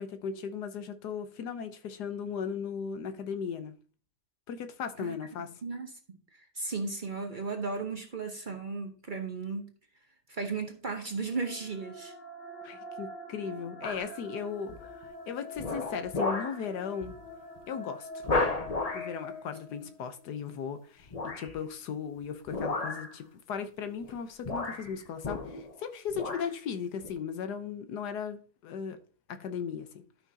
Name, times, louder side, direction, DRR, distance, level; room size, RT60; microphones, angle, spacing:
voice 1, 0.0-3.7 4.5-5.6 12.6-17.1 17.7-18.2 18.9-21.1 21.4-29.0 29.3-30.0, left 6 dB, 85° left, 1.5 m, -37 dB
voice 2, 5.6-9.7 10.3-12.1, right 4 dB, 40° right, 0.9 m, -35 dB
sound 1, 11.0-20.3, left 1 dB, 45° left, 1.9 m, -45 dB
sound 2, 13.8-14.2 14.7-15.0 15.6-16.6 17.0-17.2 17.6-17.7 18.2-19.2 21.1-21.6 22.5-23.1 24.0-24.2 24.4-25.8 26.1-26.5 27.0-27.1, left 3 dB, 30° left, 0.8 m, -33 dB
12.5 x 5.9 x 2.8 m
omnidirectional pair, 1.7 m